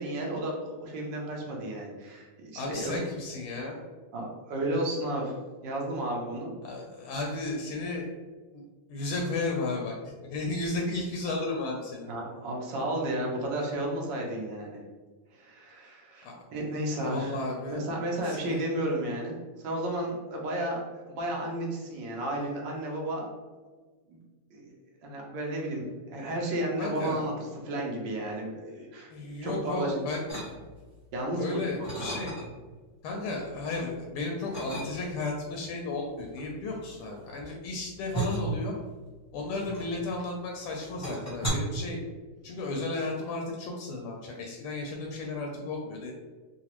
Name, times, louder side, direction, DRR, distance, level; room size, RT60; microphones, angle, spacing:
voice 1, 0.0-2.9 4.1-5.4 5.6-6.5 12.1-14.8 15.3-17.3 17.7-19.3 19.6-23.3 24.1-24.2 24.5-24.7 25.0-27.3 27.6-29.1 29.4-29.9 31.1-31.5, right 1 dB, 65° right, -1 dB, 1.2 m, -32 dB
voice 2, 2.5-3.8 6.6-8.0 8.5-8.6 8.9-12.1 16.2-16.3 17.0-17.8 18.2-18.6 26.8-27.3 29.1-30.3 31.4-32.3 33.0-38.7 39.3-42.0 42.4-46.1, left 2 dB, 80° left, 0 dB, 1.4 m, -34 dB
sound 1, 30.3-31.0 31.4-32.7 33.1-33.9 34.5-35.3 36.2-40.3 40.6-41.5, right 2 dB, 10° left, 0.7 m, -36 dB
4.0 x 2.2 x 2.9 m, 1.3 s
omnidirectional pair, 2.4 m